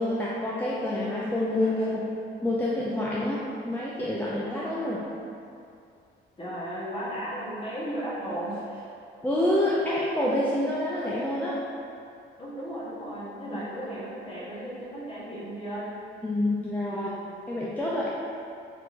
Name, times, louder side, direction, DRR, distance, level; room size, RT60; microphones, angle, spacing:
voice 1, 0.0-2.1 2.4-5.1 9.2-11.6 13.5-13.6 16.2-17.1 17.5-18.1, left 1 dB, 10° left, -7 dB, 0.3 m, -27 dB
voice 2, 1.5-2.0 6.4-8.9 12.4-16.0 16.9-17.4, right 1 dB, 25° left, -7 dB, 1.0 m, -36 dB
3.5 x 2.9 x 2.5 m, 2.5 s
cardioid pair, 90°, 20 cm